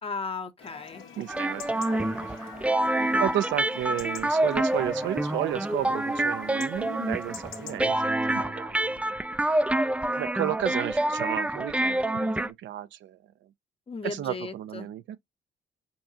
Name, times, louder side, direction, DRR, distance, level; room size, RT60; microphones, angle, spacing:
voice 1, 0.0-1.0 3.0-3.3 13.9-14.9, left 4 dB, 30° left, 0.7 m, -36 dB
Chatter / Livestock farm animals working animals / Chirp tweet, 0.6-7.8, left 6 dB, 90° left, 1.4 m, -45 dB
voice 2, 1.2-2.1 3.2-9.2 10.2-13.2 14.0-15.2, right 12 dB, 70° right, 0.5 m, -33 dB
sound 1, 1.3-12.5, right 1 dB, 5° right, 0.3 m, -27 dB
4.5 x 2.7 x 2.7 m
cardioid pair, 90°, 20 cm